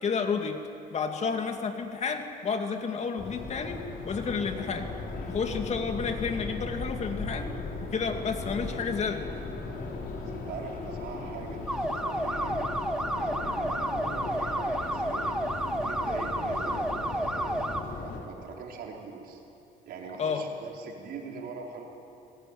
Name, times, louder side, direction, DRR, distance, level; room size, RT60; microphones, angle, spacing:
voice 1, 0.0-0.6 0.9-3.8 4.1-4.9 5.3-7.5 7.8-9.2 20.2-20.4, left 5 dB, 40° left, 5 dB, 2.4 m, -31 dB
Subway metro underground, 3.2-18.2, left 3 dB, 60° left, 5.1 m, -37 dB
voice 2, 10.2-12.7 13.1-15.3 15.8-19.4 19.8-21.9, right 5 dB, 70° right, -1 dB, 4.8 m, -42 dB
sound 1, 11.7-17.8, right 1 dB, 5° right, 1.8 m, -31 dB
23.5 x 20.0 x 9.4 m, 2.8 s
cardioid pair, 110°, 17 cm